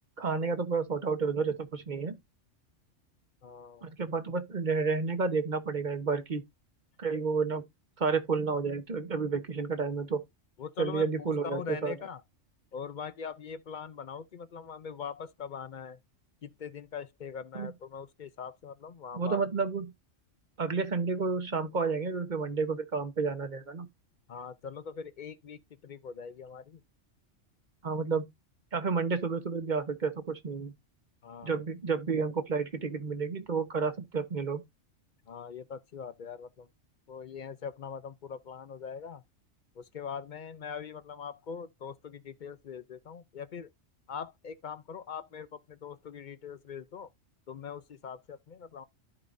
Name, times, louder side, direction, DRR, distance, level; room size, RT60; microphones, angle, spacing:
voice 1, 0.2-2.2 3.8-6.4 7.0-7.6 8.0-10.2 10.8-11.9 17.5-17.7 19.1-19.9 20.6-23.9 27.8-28.3 28.7-30.7 31.4-34.6, right 5 dB, 40° right, 1.1 m, -30 dB
voice 2, 3.4-3.9 10.6-11.1 11.4-12.2 12.7-16.0 16.4-19.4 24.3-26.8 31.2-31.6 35.3-36.7 37.1-39.2 39.8-43.7 44.1-47.1 47.5-48.8, left 6 dB, 50° left, 0.6 m, -42 dB
13.5 x 4.9 x 2.6 m
omnidirectional pair, 1.3 m